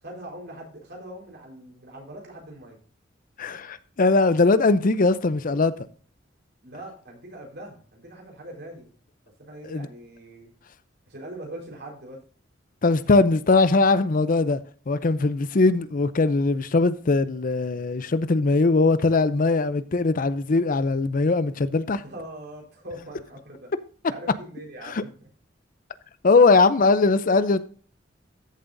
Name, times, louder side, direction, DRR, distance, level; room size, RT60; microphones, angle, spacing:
voice 1, 0.0-2.8 6.6-8.9 9.4-10.5 11.1-12.2 22.0-23.7 24.1-25.1, right 1 dB, 60° right, 4.2 m, -41 dB
voice 2, 3.4-5.7 9.6-9.9 12.8-14.6 14.9-22.0 24.8-25.0 26.2-27.6, left 3 dB, 45° left, 0.5 m, -20 dB
14.0 x 7.5 x 2.6 m
head